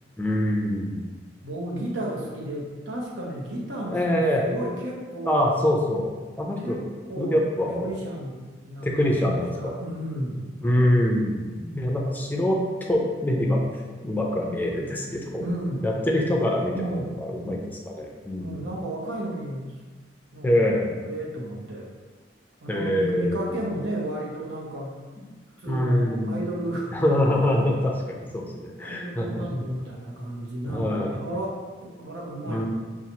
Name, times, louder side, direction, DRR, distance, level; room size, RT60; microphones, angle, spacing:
voice 1, 0.2-1.0 3.9-4.5 5.2-6.8 7.2-7.9 8.8-9.8 10.6-15.4 15.8-18.5 20.4-21.0 22.7-23.6 25.7-26.4 26.9-29.6 30.7-31.1 32.5-32.7, left 1 dB, 10° left, -1 dB, 0.4 m, -25 dB
voice 2, 1.4-5.5 6.6-6.8 7.0-7.4 7.7-9.1 9.6-10.5 15.4-15.9 16.8-17.2 18.4-19.7 20.3-20.7 21.0-21.9 22.6-25.0 25.6-26.9 28.8-32.7, right 1 dB, 90° right, -3 dB, 1.0 m, -33 dB
5.7 x 2.3 x 2.8 m, 1.3 s
head